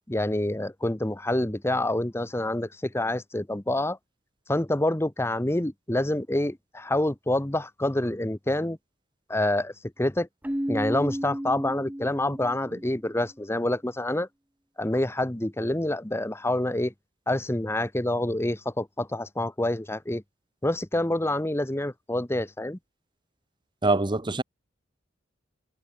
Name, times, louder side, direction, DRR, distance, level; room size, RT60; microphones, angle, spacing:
voice 1, 0.1-4.0 4.5-8.8 9.3-9.7 10.0-10.3 10.7-14.3 14.8-16.9 17.3-20.2 20.6-22.8, left 1 dB, 15° left, 0.9 m, -27 dB
Keyboard (musical), 10.4-13.1, equal, 10° right, 1.2 m, -33 dB
voice 2, 23.8-24.4, right 2 dB, 25° right, 0.9 m, -24 dB
head